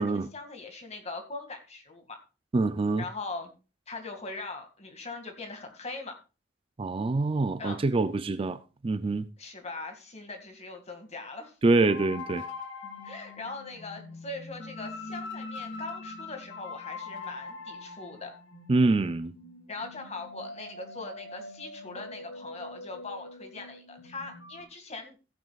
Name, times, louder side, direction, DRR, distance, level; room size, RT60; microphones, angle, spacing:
voice 1, 0.0-2.2 3.0-3.5 3.9-6.2 7.6-7.8 9.4-11.6 13.0-18.3 19.7-25.2, left 3 dB, 35° left, 2.1 m, -41 dB
voice 2, 2.5-3.0 6.8-9.3 11.6-12.4 18.7-19.3, right 3 dB, 30° right, 0.4 m, -25 dB
sound 1, 11.9-24.6, left 3 dB, 85° left, 2.1 m, -43 dB
15.5 x 9.2 x 2.4 m
head